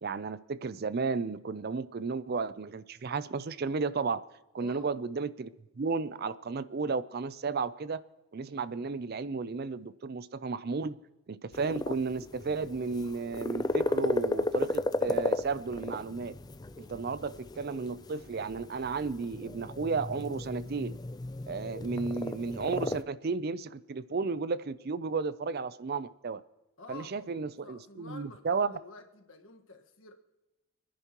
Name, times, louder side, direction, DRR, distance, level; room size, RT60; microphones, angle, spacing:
voice 1, 0.0-4.2 4.5-5.5 5.8-8.0 8.3-11.0 11.3-16.3 16.8-21.0 21.5-26.4 26.9-28.7, right 4 dB, 45° right, 0.4 m, -33 dB
voice 2, 4.6-4.9 26.8-30.1, left 3 dB, 65° left, 1.5 m, -50 dB
sound 1, 11.5-23.0, left 2 dB, 20° left, 0.4 m, -34 dB
28.0 x 10.5 x 3.0 m
head